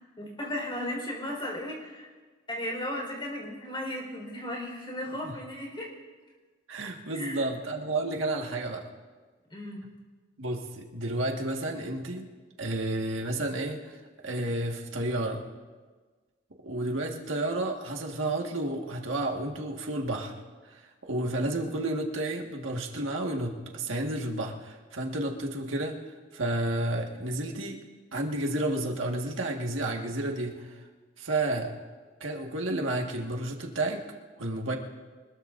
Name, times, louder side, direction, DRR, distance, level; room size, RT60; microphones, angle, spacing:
voice 1, 0.2-2.1 2.5-5.9 7.1-7.4 9.5-9.9, left 1 dB, 25° left, 0 dB, 4.4 m, -35 dB
voice 2, 6.7-8.9 10.4-12.3 12.6-14.0 14.2-15.4 16.6-20.3 20.7-26.0 26.3-27.8 28.1-30.8 31.2-31.7 32.2-34.0 34.4-34.8, right 1 dB, 80° right, 1 dB, 1.7 m, -31 dB
25.0 x 20.5 x 2.6 m, 1.4 s
head